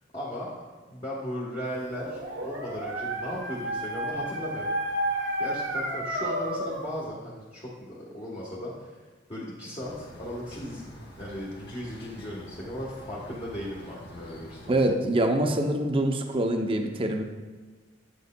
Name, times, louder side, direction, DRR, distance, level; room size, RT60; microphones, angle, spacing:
voice 1, 0.1-0.5 0.9-4.7 5.4-9.0 9.3-10.9 11.2-14.8, equal, 30° left, -7 dB, 1.1 m, -36 dB
Dog, 1.8-6.9, right 1 dB, 80° right, 1.1 m, -31 dB
sound 1, 9.8-14.9, left 1 dB, 60° left, 1.1 m, -47 dB
voice 2, 14.7-17.2, right 1 dB, 30° right, 4 dB, 0.5 m, -25 dB
8.4 x 7.9 x 2.2 m, 1.4 s
head